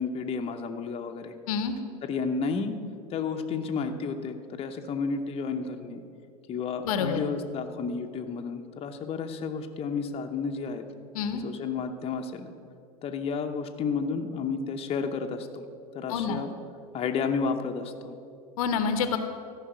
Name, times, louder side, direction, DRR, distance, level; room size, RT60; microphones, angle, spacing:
voice 1, 0.0-1.3 2.0-2.7 3.1-6.0 6.5-10.8 11.3-12.5 13.0-15.6 15.9-16.5 16.9-18.2, left 5 dB, 30° left, 4 dB, 0.8 m, -31 dB
voice 2, 6.8-7.2 11.1-11.4 16.1-16.4 18.6-19.2, left 6 dB, 65° left, 9 dB, 0.8 m, -27 dB
13.5 x 5.6 x 6.1 m, 2.4 s
hypercardioid pair, 85°, 20 cm